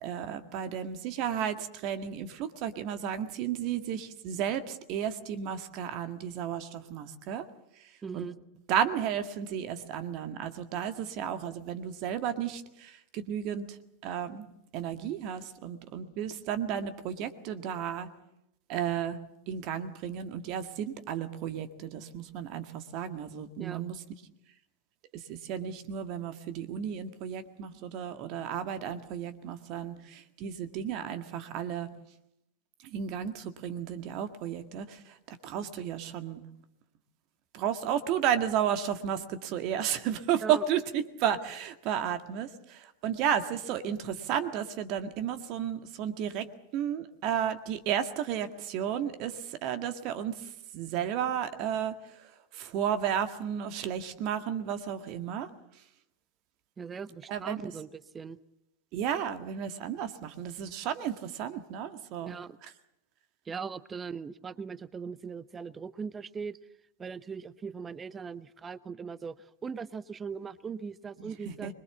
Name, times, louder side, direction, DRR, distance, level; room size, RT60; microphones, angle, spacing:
voice 1, 0.0-7.5 8.1-8.3 8.7-13.8 14.0-14.5 14.7-18.1 18.7-19.2 19.5-24.0 25.1-31.9 32.8-36.4 37.5-46.5 46.7-55.5 57.3-57.6 58.9-62.3 62.6-62.7 71.2-71.7, right 9 dB, 40° right, 9 dB, 1.8 m, -33 dB
voice 2, 8.0-8.3 23.6-23.8 40.4-40.6 56.8-58.4 62.2-62.6 63.5-66.6 67.0-71.7, right 5 dB, 20° right, 18 dB, 0.8 m, -40 dB
25.0 x 22.5 x 7.2 m, 0.83 s
figure-of-eight pair, 90°, 0 cm